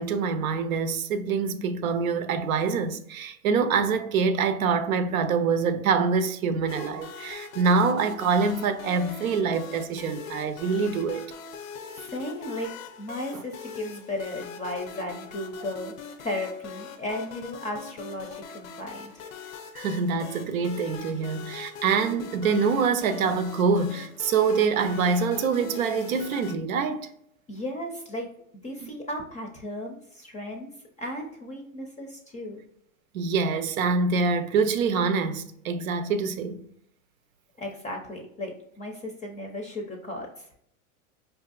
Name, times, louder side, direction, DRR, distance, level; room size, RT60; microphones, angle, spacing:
voice 1, 0.0-11.2 19.7-27.1 28.8-28.9 33.1-36.6, right 5 dB, 90° right, 0.6 m, -25 dB
sound 1, 6.7-26.6, left 6 dB, 80° left, 0.6 m, -42 dB
voice 2, 11.9-12.7 13.0-19.1 27.5-28.3 28.6-30.7 31.0-32.6 37.6-40.6, left 1 dB, 20° left, 0.5 m, -35 dB
4.7 x 2.7 x 2.3 m
hypercardioid pair, 120°, 41 cm